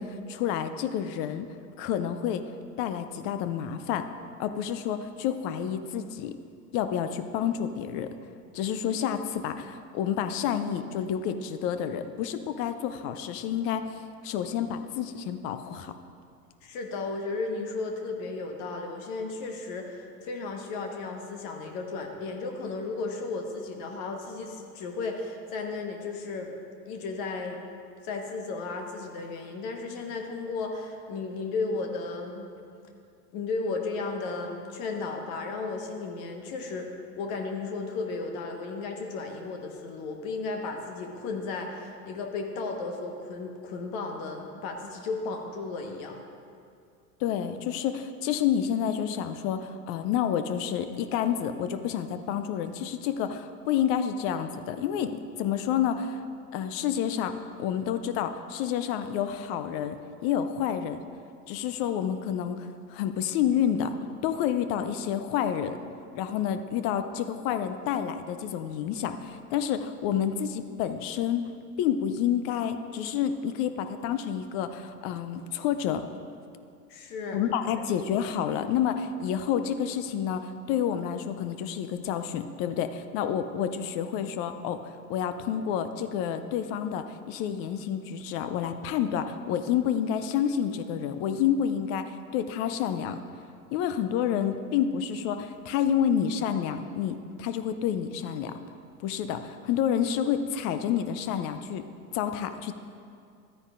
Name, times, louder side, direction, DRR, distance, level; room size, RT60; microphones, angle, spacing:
voice 1, 0.0-1.5 1.8-2.4 2.8-4.1 4.4-6.3 6.7-8.1 8.5-15.9 47.2-56.2 56.5-61.0 61.5-63.9 64.2-65.8 66.1-71.5 71.8-76.0 77.3-93.2 93.7-98.6 99.0-101.8 102.1-102.7, left 9 dB, 30° left, 10 dB, 0.4 m, -29 dB
voice 2, 16.6-26.5 26.8-27.6 28.0-32.5 33.3-36.9 37.2-46.2 76.9-77.4, left 3 dB, 45° left, 3 dB, 1.3 m, -34 dB
13.0 x 9.5 x 2.5 m, 2.4 s
hypercardioid pair, 90°, 48 cm